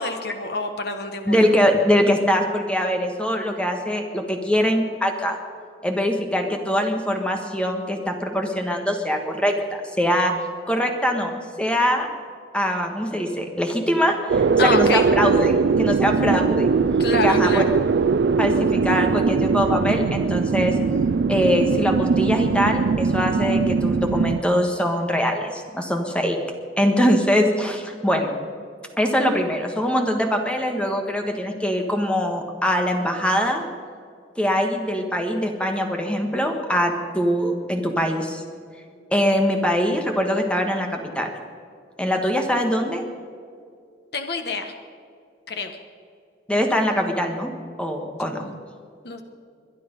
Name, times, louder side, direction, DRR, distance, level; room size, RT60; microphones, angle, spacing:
voice 1, 0.0-1.4 14.6-15.0 17.0-17.7 44.1-44.7 45.5-45.7 48.4-48.6 49.0-49.2, left 3 dB, 60° left, 6 dB, 1.3 m, -27 dB
voice 2, 1.2-5.4 5.8-10.3 10.7-12.1 12.5-16.7 17.1-17.6 18.4-20.7 21.3-26.4 26.8-28.3 29.0-33.7 34.4-38.4 39.1-41.3 42.0-43.0 46.5-47.5 47.8-48.4, equal, 5° left, 3 dB, 1.6 m, -22 dB
sound 1, 14.3-24.4, right 5 dB, 70° right, 0.4 m, -21 dB
22.0 x 10.5 x 5.3 m, 2.3 s
head